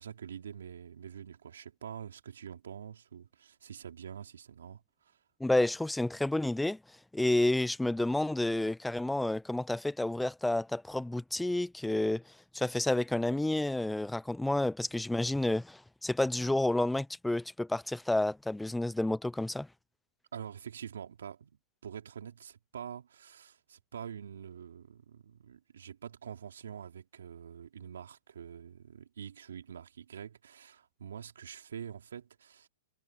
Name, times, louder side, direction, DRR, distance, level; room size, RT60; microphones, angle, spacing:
voice 1, 0.0-5.2 20.3-32.7, right 8 dB, 80° right, 3.6 m, -46 dB
voice 2, 5.4-6.8 7.1-12.2 12.5-19.7, left 1 dB, 5° left, 0.6 m, -30 dB
hypercardioid pair, 125°, 0 cm